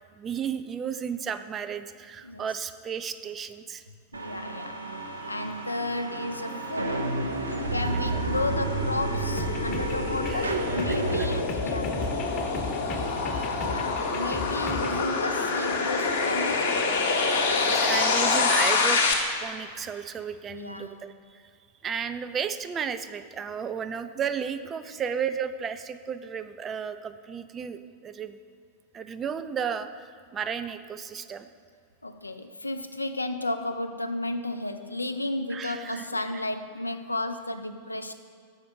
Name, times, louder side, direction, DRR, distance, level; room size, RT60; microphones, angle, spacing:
voice 1, 0.1-3.8 7.8-8.2 10.3-10.5 10.9-11.3 12.3-12.5 13.2-13.6 17.0-17.1 17.6-19.0 19.4-21.4 21.8-28.4 28.9-31.5 35.5-36.1 36.3-36.4, right 7 dB, 25° right, 11 dB, 0.3 m, -34 dB
voice 2, 4.1-4.8 5.3-7.1 7.7-12.0 13.6-16.7 20.5-21.0 24.9-25.0 32.0-38.1, left 2 dB, 85° left, 8 dB, 0.4 m, -33 dB
sound 1, 4.1-11.4, right 3 dB, 75° right, 0.5 m, -31 dB
sound 2, 5.9-19.1, left 4 dB, 60° left, 0.9 m, -27 dB
sound 3, 9.4-15.0, left 3 dB, 30° left, 0.8 m, -36 dB
6.4 x 5.0 x 4.9 m, 2.3 s
figure-of-eight pair, 90°, 0 cm